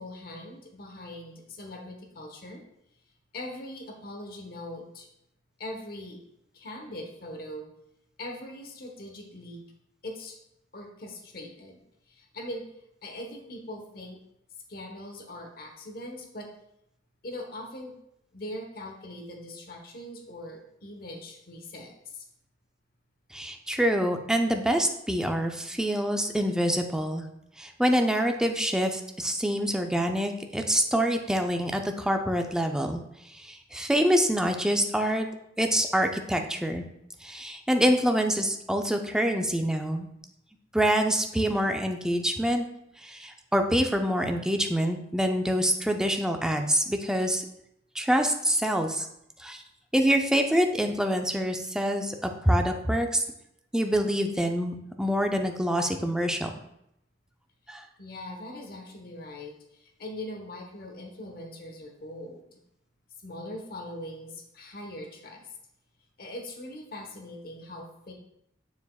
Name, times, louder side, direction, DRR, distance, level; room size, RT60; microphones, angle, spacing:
voice 1, 0.0-2.6 3.3-5.1 5.6-6.2 6.5-7.7 8.2-9.6 10.0-10.4 10.7-11.8 12.1-12.6 13.0-14.2 14.7-16.5 17.2-18.0 18.3-22.2 58.0-62.6 63.2-65.4 66.2-68.1, left 1 dB, 55° left, 3 dB, 1.1 m, -41 dB
voice 2, 23.3-27.2 27.6-33.0 33.3-35.3 35.6-36.9 37.2-40.1 40.7-42.6 43.0-47.4 47.9-49.1 49.4-49.6 49.9-53.2 53.7-56.5 57.7-57.8, equal, 5° right, 4 dB, 0.5 m, -26 dB
7.0 x 6.9 x 2.3 m, 0.79 s
head